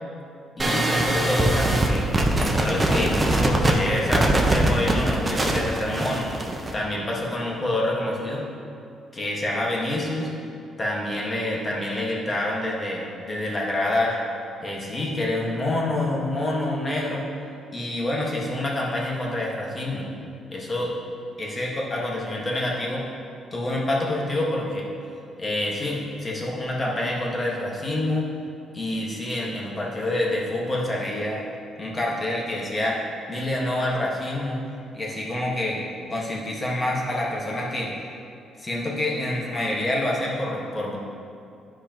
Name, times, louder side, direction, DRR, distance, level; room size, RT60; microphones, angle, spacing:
voice 1, 0.6-2.1 2.4-3.2 3.4-6.3 6.7-8.5 9.1-10.3 10.8-14.2 14.6-17.3 17.7-20.1 20.5-20.9 21.4-23.1 23.5-24.9 25.4-28.3 28.7-31.4 31.8-33.0 33.3-34.6 34.9-35.8 36.1-37.9 38.6-41.0, left 1 dB, 30° left, -3 dB, 1.6 m, -27 dB
sound 1, 0.6-6.7, right 1 dB, 20° right, 0.9 m, -22 dB
11.5 x 4.8 x 3.0 m, 2.5 s
cardioid pair, 90°, 0 cm